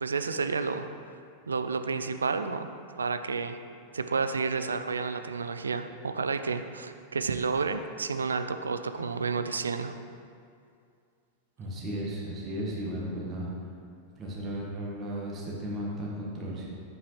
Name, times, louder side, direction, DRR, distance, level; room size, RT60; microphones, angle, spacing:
voice 1, 0.0-0.9 1.5-2.7 3.0-3.6 3.9-9.9, right 4 dB, 75° right, 9 dB, 0.4 m, -30 dB
voice 2, 11.6-13.5 14.2-16.7, equal, 25° right, -5 dB, 1.6 m, -35 dB
8.2 x 7.6 x 3.3 m, 2.4 s
figure-of-eight pair, 90°, 0 cm